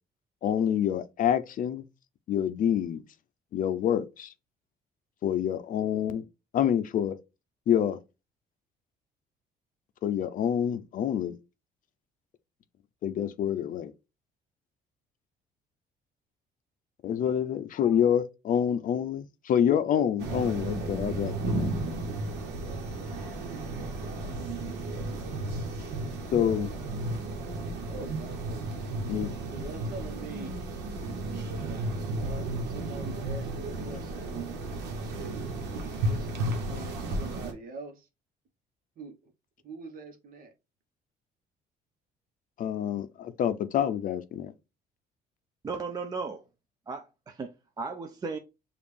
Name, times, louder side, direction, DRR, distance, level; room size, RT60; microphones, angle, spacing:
voice 1, 0.4-1.8 2.3-3.0 3.5-4.3 5.2-6.2 6.5-7.2 7.7-8.0 10.0-11.4 13.0-13.9 17.0-21.7 26.3-26.7 29.1-29.3 42.6-44.5, left 9 dB, 55° left, 0.5 m, -27 dB
sound 1, 20.2-37.5, right 2 dB, 90° right, 1.1 m, -33 dB
voice 2, 27.9-28.8 29.5-30.6 32.1-34.4 35.2-35.4 35.9-38.1 39.0-39.3 39.6-40.5, right 3 dB, 55° right, 1.1 m, -44 dB
voice 3, 45.6-46.5 46.9-48.4, right 4 dB, 25° right, 0.4 m, -36 dB
5.1 x 2.5 x 3.3 m
cardioid pair, 110°, 17 cm